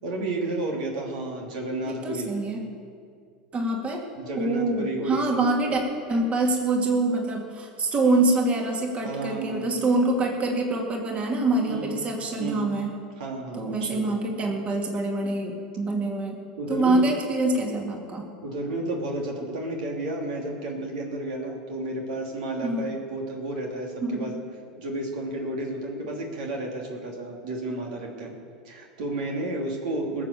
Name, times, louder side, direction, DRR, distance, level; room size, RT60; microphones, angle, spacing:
voice 1, 0.0-2.3 4.2-5.4 9.0-9.6 11.7-12.0 12.4-12.7 13.2-14.1 16.6-17.0 18.4-24.4 24.8-28.3 28.6-30.2, right 2 dB, 70° right, 0 dB, 2.9 m, -32 dB
voice 2, 1.9-2.6 3.5-4.0 4.4-5.8 6.1-12.9 13.5-16.4 16.7-18.3 22.6-23.0 24.0-24.4, right 2 dB, 30° right, 1 dB, 2.5 m, -25 dB
20.5 x 7.6 x 7.0 m, 2.2 s
hypercardioid pair, 90°, 4 cm